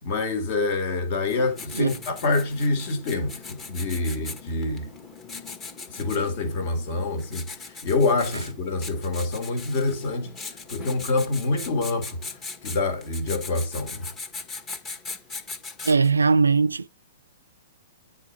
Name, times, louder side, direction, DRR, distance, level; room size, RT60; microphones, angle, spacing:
voice 1, 0.0-4.9 5.9-14.1, left 3 dB, 45° left, 1.9 m, -26 dB
Writing, 1.3-16.2, left 4 dB, 20° left, 1.4 m, -40 dB
voice 2, 15.8-16.9, right 4 dB, 85° right, 0.3 m, -20 dB
8.9 x 4.2 x 4.5 m
figure-of-eight pair, 115°, 0 cm